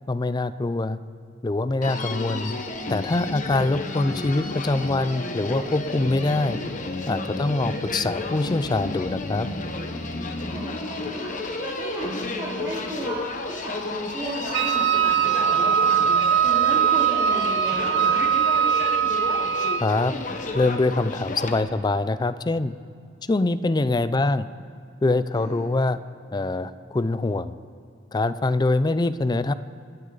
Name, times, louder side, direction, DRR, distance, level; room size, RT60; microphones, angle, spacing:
voice 1, 0.1-1.0 1.4-2.5 2.9-6.6 7.1-9.5 19.8-20.1 20.5-22.7 23.3-24.5 25.0-26.0 26.3-27.5 28.1-29.5, left 2 dB, 20° left, 14 dB, 0.4 m, -24 dB
Human voice, 1.8-21.6, left 2 dB, 40° left, 1.1 m, -32 dB
voice 2, 7.3-7.7 10.5-16.0 16.4-18.2 25.3-25.7, right 1 dB, 20° right, -9 dB, 2.6 m, -35 dB
Wind instrument woodwind instrument, 14.5-19.9, right 8 dB, 65° right, 0.5 m, -21 dB
26.5 x 9.5 x 4.0 m, 2.3 s
head